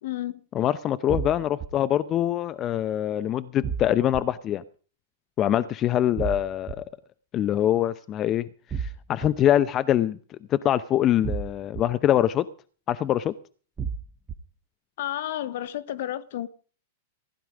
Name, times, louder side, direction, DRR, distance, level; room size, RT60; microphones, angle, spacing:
voice 1, 0.0-0.4 15.0-16.5, left 13 dB, 60° left, 1.2 m, -31 dB
voice 2, 0.5-4.6 5.4-6.8 7.3-8.5 8.8-12.5 12.9-13.3, left 11 dB, 35° left, 0.7 m, -24 dB
sound 1, 1.1-1.7 3.6-4.2 6.2-6.7 8.7-9.3 11.2-11.8 13.8-14.4, right 6 dB, 20° right, 1.2 m, -31 dB
15.5 x 11.0 x 5.0 m
hypercardioid pair, 105°, 0 cm